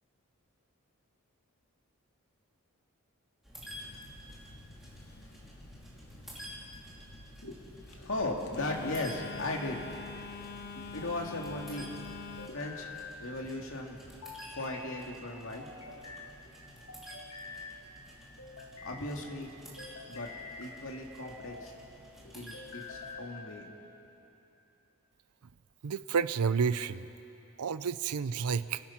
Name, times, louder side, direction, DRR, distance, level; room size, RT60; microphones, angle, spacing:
sound 1, 3.4-23.1, equal, ahead, 3.1 m, -52 dB
Telephone, 3.6-12.5, left 4 dB, 50° left, 1.2 m, -46 dB
voice 1, 7.9-9.8 10.9-11.9 12.5-12.9 13.2-14.2 14.5-16.2 18.8-19.5 20.1-20.3 20.6-21.7 22.2-23.7, left 2 dB, 65° left, 1 dB, 2.3 m, -37 dB
sound 2, 8.7-9.4 10.7-11.5 12.4-13.2 14.2-15.0 15.6-16.3 16.9-17.7 18.4-19.0 19.8-20.7 21.2-21.8 22.5-23.4, left 4 dB, 85° left, 2.7 m, -47 dB
voice 2, 25.8-27.1 27.6-28.8, right 6 dB, 90° right, 14 dB, 0.5 m, -30 dB
29.5 x 16.0 x 5.9 m, 2.9 s
head